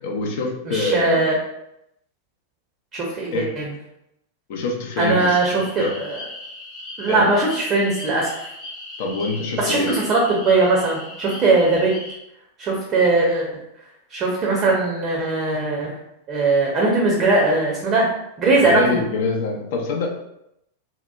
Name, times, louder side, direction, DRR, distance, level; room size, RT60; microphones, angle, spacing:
voice 1, 0.0-1.3 3.3-3.5 4.5-5.4 5.8-5.9 7.1-7.3 9.0-9.9 18.6-20.1, left 3 dB, 50° left, 1 dB, 0.5 m, -25 dB
voice 2, 0.7-1.3 2.9-3.6 5.0-6.2 7.0-8.5 9.6-11.9 12.6-13.5 14.1-15.9 16.3-18.1 18.4-19.0, right 3 dB, 30° right, -2 dB, 0.6 m, -20 dB
sound 1, 5.0-12.2, left 2 dB, 35° left, 0.8 m, -37 dB
2.9 x 2.0 x 2.3 m, 0.80 s
figure-of-eight pair, 90°, 0 cm